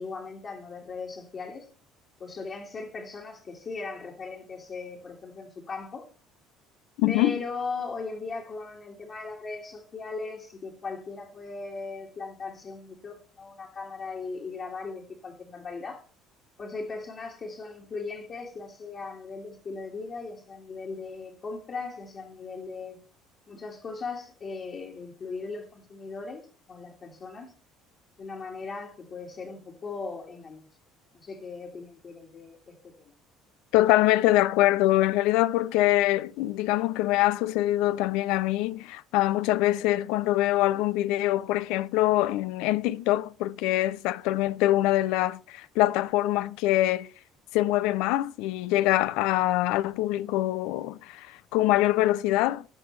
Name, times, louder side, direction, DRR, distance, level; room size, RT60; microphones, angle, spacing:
voice 1, 0.0-1.7 2.2-6.1 7.1-16.0 16.6-23.0 23.5-27.5 28.2-30.7 31.1-33.1, left 4 dB, 35° left, 1.9 m, -38 dB
voice 2, 7.0-7.4 33.7-47.1 47.5-52.6, left 15 dB, 80° left, 0.5 m, -24 dB
17.0 x 6.1 x 3.2 m
cardioid pair, 125°, 0 cm